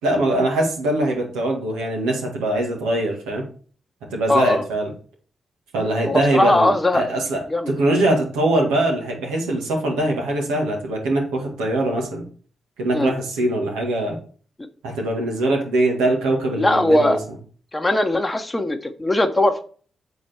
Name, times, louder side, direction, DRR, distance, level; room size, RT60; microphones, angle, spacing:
voice 1, 0.0-3.5 4.1-4.9 5.7-12.2 12.8-14.2 14.8-17.2, right 1 dB, 85° right, 0 dB, 2.1 m, -22 dB
voice 2, 4.3-4.6 6.1-7.0 7.5-7.7 12.9-13.1 16.6-17.2 17.7-19.6, left 1 dB, 20° left, 5 dB, 1.1 m, -19 dB
7.1 x 4.7 x 4.4 m, 0.42 s
hypercardioid pair, 40°, 0 cm